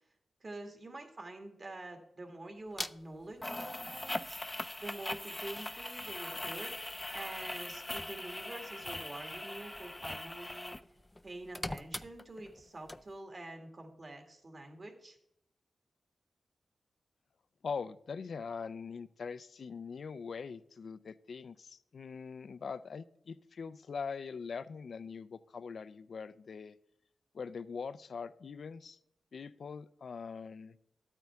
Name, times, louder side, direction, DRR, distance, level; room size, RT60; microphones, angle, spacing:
voice 1, 0.4-4.4 4.8-6.7 7.1-10.8 11.2-15.2, right 2 dB, 45° right, 4 dB, 2.0 m, -47 dB
sound 1, 2.8-2.9 3.4-10.9 11.2-12.6 12.9-13.0, left 1 dB, 15° left, 0.4 m, -40 dB
voice 2, 17.6-26.8 27.3-29.0 29.3-30.8, left 5 dB, 70° left, 16 dB, 0.4 m, -42 dB
12.0 x 8.9 x 3.5 m, 0.76 s
cardioid pair, 70°, 0 cm